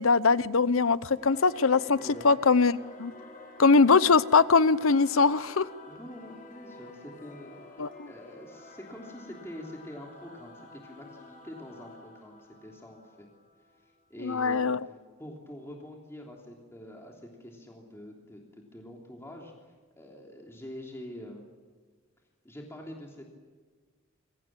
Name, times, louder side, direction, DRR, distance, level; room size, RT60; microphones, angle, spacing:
voice 1, 0.0-2.0 2.2-3.1 3.6-5.7 7.8-7.9 14.2-14.8, left 4 dB, 70° left, 16 dB, 0.8 m, -22 dB
Singing / Musical instrument, 1.1-14.0, left 2 dB, 40° left, 7.0 m, -50 dB
voice 2, 2.0-2.3 5.9-7.6 8.0-13.3 13.8-14.8 15.2-18.4 18.7-19.5 20.0-21.5 22.4-23.4, left 1 dB, 10° left, -1 dB, 3.2 m, -45 dB
28.0 x 23.0 x 7.5 m, 1.4 s
head